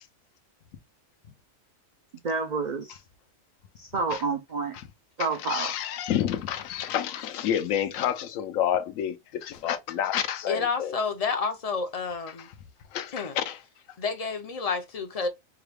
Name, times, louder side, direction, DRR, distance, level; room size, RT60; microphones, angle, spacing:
voice 1, 2.2-3.0 3.8-4.8 5.2-5.7, right 4 dB, 60° right, 0.4 m, -29 dB
voice 2, 5.2-10.9 12.4-12.5 12.9-13.6, left 10 dB, 80° left, 1.0 m, -29 dB
voice 3, 10.5-12.5 13.1-13.4 14.0-15.3, left 5 dB, 40° left, 0.5 m, -29 dB
4.7 x 2.3 x 3.3 m
omnidirectional pair, 1.4 m